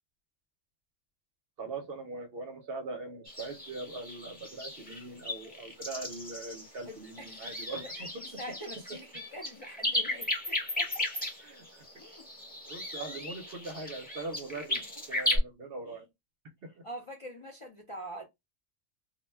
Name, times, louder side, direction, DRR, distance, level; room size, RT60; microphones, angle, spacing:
voice 1, 1.6-8.1 11.5-11.6 12.7-14.8 15.1-16.1 16.6-16.8, right 3 dB, 60° right, 0.7 m, -41 dB
sound 1, 3.3-15.4, left 1 dB, 10° left, 0.7 m, -35 dB
voice 2, 6.9-7.5 7.8-11.1 12.0-12.3 14.7-14.8 15.1-15.4 15.9-16.0 16.8-18.3, equal, 40° left, 0.4 m, -45 dB
2.3 x 2.1 x 3.2 m
omnidirectional pair, 1.3 m